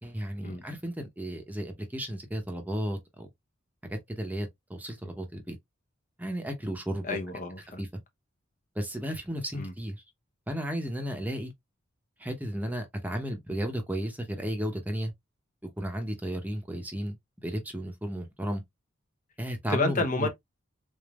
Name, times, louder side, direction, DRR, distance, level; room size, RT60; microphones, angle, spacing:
voice 1, 0.0-3.3 3.9-5.6 6.2-7.2 7.8-7.9 8.7-10.0 10.5-11.5 12.2-15.1 15.6-18.6 19.4-20.3, equal, 10° right, 0.8 m, -34 dB
voice 2, 7.0-7.8 9.5-9.7 19.7-20.3, left 2 dB, 40° left, 0.8 m, -30 dB
3.9 x 3.6 x 2.4 m
head